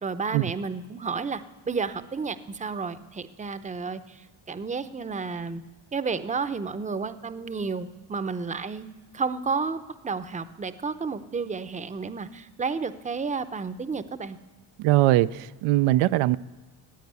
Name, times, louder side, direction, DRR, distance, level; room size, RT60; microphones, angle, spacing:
voice 1, 0.0-5.6 5.9-8.9 9.1-14.4, right 5 dB, 15° right, 0.7 m, -31 dB
voice 2, 14.8-16.4, right 16 dB, 85° right, 0.5 m, -21 dB
15.0 x 9.3 x 9.5 m
cardioid pair, 90°, 49 cm